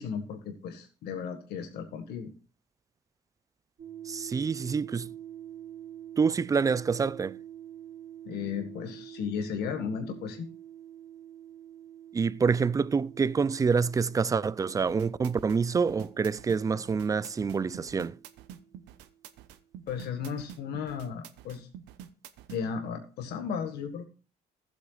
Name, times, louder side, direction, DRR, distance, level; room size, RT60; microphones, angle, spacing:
voice 1, 0.0-2.3 8.2-10.5 19.9-21.7 22.5-24.1, left 6 dB, 75° left, 1.7 m, -35 dB
sound 1, 3.8-19.3, right 11 dB, 50° right, 3.3 m, -47 dB
voice 2, 4.1-5.1 6.2-7.4 12.1-18.2, right 5 dB, 20° right, 0.4 m, -27 dB
sound 2, 14.9-22.6, right 9 dB, 85° right, 0.9 m, -47 dB
15.0 x 8.1 x 2.4 m
cardioid pair, 110°, 17 cm